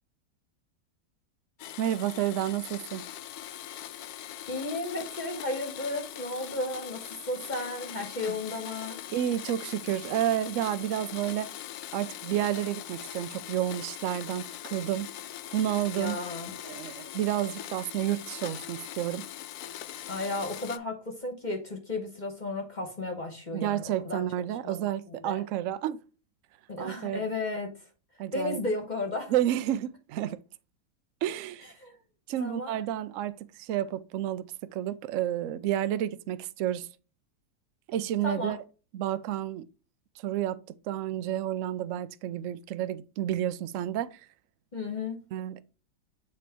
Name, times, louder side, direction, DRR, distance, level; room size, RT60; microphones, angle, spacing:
Domestic sounds home sounds, 1.6-20.8, left 12 dB, 75° left, 1.0 m, -41 dB
voice 1, 1.8-3.0 9.1-11.5 11.9-15.1 15.5-16.2 16.6-19.3 23.5-26.0 26.8-27.2 28.2-28.6 29.3-30.4 31.2-31.7 32.3-34.4 34.7-36.9 37.9-38.6 38.9-39.6 40.2-40.6 40.8-44.2 45.3-45.7, right 12 dB, 70° right, 0.8 m, -30 dB
voice 2, 4.5-9.0 15.9-16.6 20.1-24.2 24.6-25.4 26.7-27.8 28.3-29.3 31.8-32.0 32.4-32.8 38.2-38.6 44.7-45.3, left 2 dB, 30° left, 1.1 m, -34 dB
7.6 x 3.0 x 4.4 m
omnidirectional pair, 1.7 m